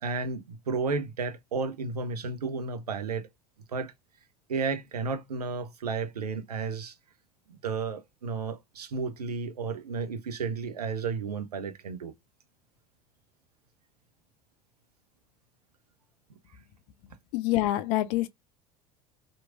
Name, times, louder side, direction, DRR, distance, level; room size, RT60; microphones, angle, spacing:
voice 1, 0.0-3.3 3.7-3.9 4.5-6.9 7.6-12.1, right 4 dB, 80° right, 0.6 m, -32 dB
voice 2, 17.3-18.3, left 15 dB, 55° left, 0.4 m, -26 dB
2.9 x 2.5 x 2.5 m
figure-of-eight pair, 70°, 20 cm